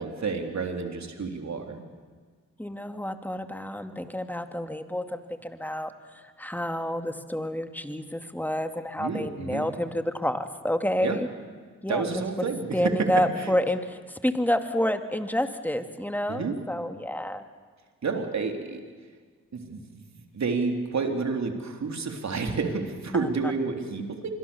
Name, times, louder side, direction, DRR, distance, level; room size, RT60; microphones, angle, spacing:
voice 1, 0.0-1.8 9.0-9.7 11.0-11.2 11.9-13.1 13.4-13.5 16.3-16.5 18.0-18.8 19.5-20.0 20.3-24.3, right 4 dB, 60° right, 4 dB, 3.5 m, -30 dB
voice 2, 2.6-5.9 6.4-11.3 11.8-12.0 12.4-17.4 23.1-23.3, left 1 dB, 5° left, 7 dB, 2.3 m, -29 dB
25.5 x 22.5 x 7.1 m, 1.5 s
supercardioid pair, 45°, 31 cm